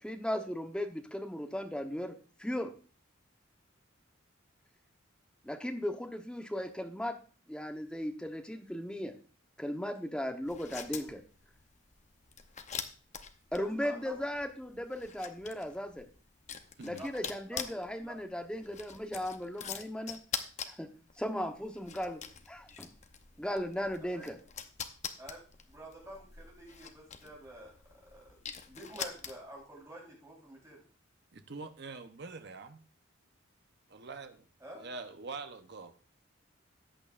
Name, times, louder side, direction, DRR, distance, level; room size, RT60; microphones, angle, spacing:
voice 1, 0.0-2.7 5.4-7.2 7.5-9.1 9.6-11.2 13.5-16.1 16.8-20.2 20.6-20.9 21.2-22.2 22.5-22.9 23.4-24.4, equal, 5° left, 5 dB, 0.9 m, -37 dB
sound 1, 10.4-29.7, left 7 dB, 35° left, 0.8 m, -45 dB
voice 2, 13.6-14.2 16.9-17.1 17.5-17.7 18.0-18.1 24.1-24.3 25.2-27.7 28.1-30.8 34.6-34.9, right 1 dB, 15° right, -3 dB, 3.8 m, -49 dB
voice 3, 31.3-32.8 33.9-34.5 34.8-36.0, right 4 dB, 55° right, 8 dB, 0.8 m, -44 dB
14.0 x 8.9 x 2.5 m, 0.38 s
head